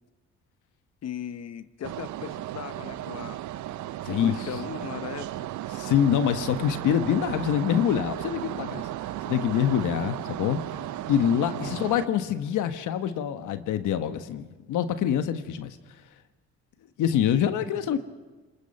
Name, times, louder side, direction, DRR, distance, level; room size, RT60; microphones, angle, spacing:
voice 1, 1.0-3.4 4.1-5.5 11.5-11.8, left 9 dB, 60° left, 12 dB, 0.9 m, -38 dB
sound 1, 1.8-12.1, right 13 dB, 75° right, 0.6 m, -35 dB
voice 2, 5.7-8.9 9.3-10.6 11.1-15.8 17.0-18.0, left 9 dB, 85° left, 10 dB, 1.3 m, -25 dB
28.0 x 20.0 x 5.4 m, 1.3 s
cardioid pair, 90°, 30 cm